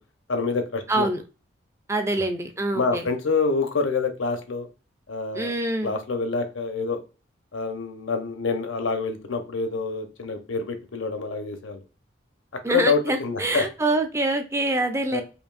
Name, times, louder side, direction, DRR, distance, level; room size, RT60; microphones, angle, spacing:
voice 1, 0.3-1.1 2.7-4.7 5.1-5.5 5.8-7.0 7.5-11.8 12.7-13.7 15.1-15.2, left 4 dB, 85° left, 6 dB, 0.8 m, -26 dB
voice 2, 0.9-1.2 1.9-3.1 5.3-5.9 12.6-15.2, right 2 dB, 15° right, 6 dB, 0.4 m, -25 dB
5.0 x 2.7 x 2.5 m, 0.33 s
head